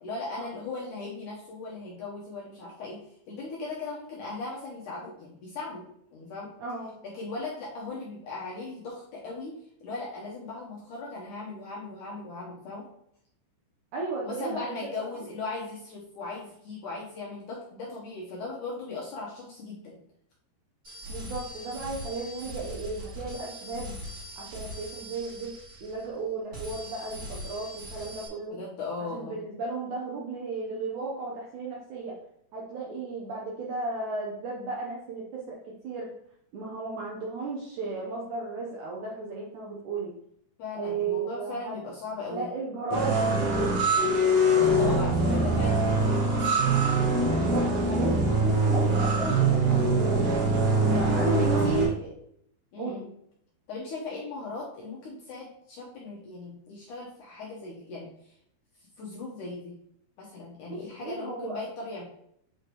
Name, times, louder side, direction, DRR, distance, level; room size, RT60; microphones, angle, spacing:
voice 1, 0.0-3.0 3.3-6.5 7.0-12.9 14.2-20.0 28.5-29.4 40.6-42.5 44.5-46.6 50.9-51.8 52.7-53.1 53.7-58.3 59.0-59.8 60.2-62.0, left 3 dB, 70° left, -4 dB, 2.0 m, -38 dB
voice 2, 6.6-7.0 13.9-14.7 21.1-23.9 24.4-25.5 25.8-28.6 29.0-32.2 32.5-36.1 36.5-40.1 40.8-41.8 42.3-43.7 44.8-44.9 45.2-45.4 47.3-48.2 48.4-50.3 50.9-52.1 52.8-53.1 60.7-61.6, right 3 dB, 75° right, -3 dB, 1.8 m, -34 dB
sound 1, 20.8-26.2 26.5-28.3, equal, 30° right, 3.5 m, -41 dB
sound 2, 42.9-51.8, right 2 dB, 55° right, 1.7 m, -23 dB
8.4 x 5.1 x 3.1 m, 0.71 s
omnidirectional pair, 4.9 m